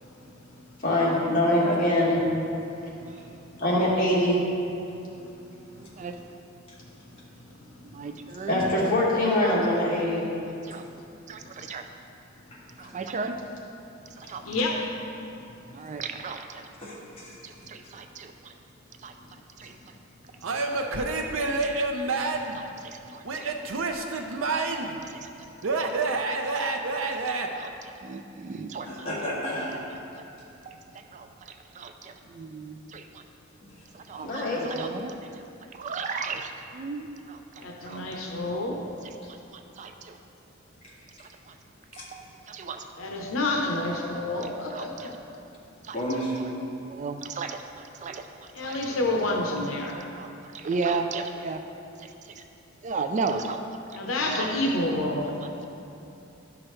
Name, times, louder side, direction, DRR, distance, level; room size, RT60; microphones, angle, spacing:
voice 1, 0.8-2.2 3.6-4.4 8.5-10.2 34.2-34.6, left 1 dB, 45° left, -6 dB, 2.0 m, -23 dB
voice 2, 5.8-6.2 7.9-8.7 10.6-10.8 11.3-11.8 12.8-13.4 14.2-14.4 15.7-16.7 17.4-18.5 19.0-19.1 19.6-19.7 20.7-21.8 22.5-23.5 25.0-25.3 25.8-26.2 26.5-26.6 26.9-29.0 30.7-30.8 31.1-33.2 33.9-35.5 35.7-37.4 37.9-38.0 39.3-39.9 41.2-41.5 42.1-42.8 44.7-45.1 45.8-46.0 46.9-48.3 48.6-49.0 49.9-51.6 52.0-52.1 52.4-52.5 52.8-53.6 54.3-54.5, right 4 dB, 35° right, 6 dB, 0.4 m, -35 dB
voice 3, 12.5-12.9 14.2-14.3 16.8-17.6 19.6-19.7 28.8-29.9 34.2-34.3 40.8-40.9 41.9-42.1 45.9-46.4, equal, 30° left, -7 dB, 1.9 m, -34 dB
voice 4, 14.4-14.8 37.6-38.8 43.0-45.1 48.5-50.0 53.9-55.4, left 2 dB, 80° left, 0 dB, 0.8 m, -28 dB
Male speech man speaking / Yell / Laughter, 20.4-22.6 23.3-25.0 25.6-27.5, right 3 dB, 85° right, 0.6 m, -28 dB
12.0 x 6.1 x 3.2 m, 2.9 s
head